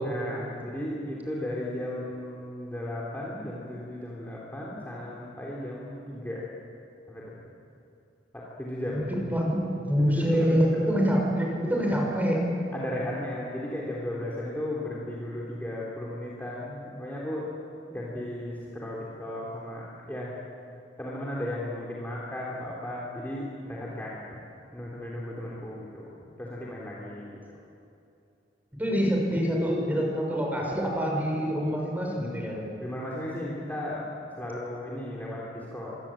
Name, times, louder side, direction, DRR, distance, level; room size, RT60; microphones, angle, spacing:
voice 1, 0.0-6.5 7.1-7.3 8.3-9.1 10.0-10.8 12.7-17.5 17.9-20.4 21.0-24.3 24.7-26.1 26.4-27.3 32.7-34.1 34.4-36.0, left 1 dB, 10° left, -5 dB, 3.5 m, -35 dB
voice 2, 9.1-12.4 28.8-32.6, equal, 10° right, -1 dB, 6.3 m, -26 dB
26.0 x 22.5 x 8.8 m, 2.7 s
head